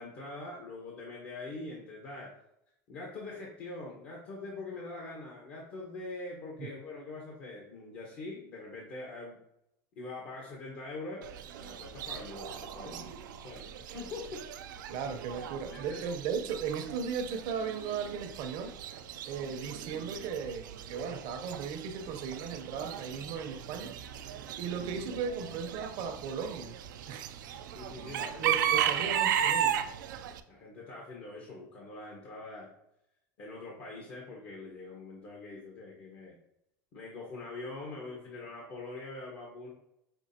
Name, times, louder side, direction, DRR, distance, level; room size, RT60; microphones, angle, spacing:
voice 1, 0.0-2.3 2.9-9.4 10.0-11.2 11.6-13.1 13.4-14.4 15.7-16.0 27.7-29.1 30.5-32.7 33.4-36.3 36.9-39.7, left 2 dB, 55° left, 1.3 m, -43 dB
Chicken rooster / Bird, 11.2-30.4, right 9 dB, 85° right, 0.4 m, -36 dB
voice 2, 14.9-18.7 19.3-23.9 24.6-26.8 27.1-27.4 28.0-28.1 28.4-29.9, right 6 dB, 60° right, 0.7 m, -36 dB
6.1 x 2.8 x 2.8 m
supercardioid pair, 100°, 10 cm